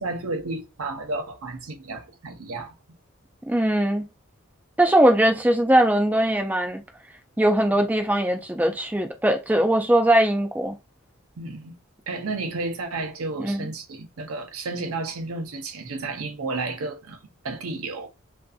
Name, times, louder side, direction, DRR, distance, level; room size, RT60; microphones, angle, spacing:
voice 1, 0.0-2.7 11.4-11.8 12.1-17.2 17.4-18.1, right 3 dB, 90° right, 0.6 m, -32 dB
voice 2, 3.5-4.0 4.8-6.8 7.4-10.8 13.4-13.7, right 1 dB, 10° right, 0.3 m, -20 dB
2.5 x 2.5 x 2.3 m
head